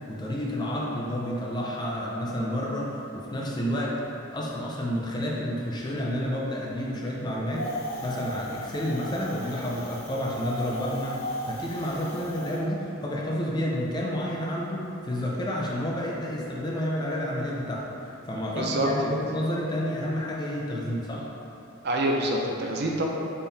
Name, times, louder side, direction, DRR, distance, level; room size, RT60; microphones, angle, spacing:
voice 1, 0.1-4.0 4.3-21.3, equal, 20° left, -3 dB, 0.4 m, -30 dB
Wind, 7.5-12.6, equal, 80° left, 0.6 m, -36 dB
voice 2, 18.6-18.9 21.8-23.0, right 1 dB, 50° right, -1 dB, 0.5 m, -26 dB
4.3 x 3.6 x 3.3 m, 2.8 s
head